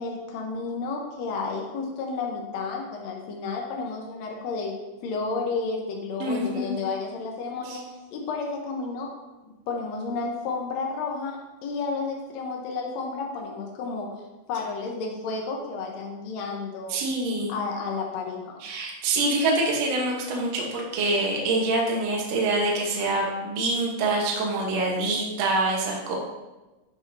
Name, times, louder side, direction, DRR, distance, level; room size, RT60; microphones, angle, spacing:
voice 1, 0.0-4.7 5.0-9.1 9.4-14.2 14.5-17.0 17.5-18.6, left 4 dB, 80° left, 0 dB, 1.5 m, -31 dB
voice 2, 6.2-6.8 7.7-7.8 16.9-17.5 18.6-26.2, right 2 dB, 65° right, -2 dB, 1.8 m, -25 dB
11.0 x 5.1 x 2.7 m, 1.1 s
omnidirectional pair, 4.3 m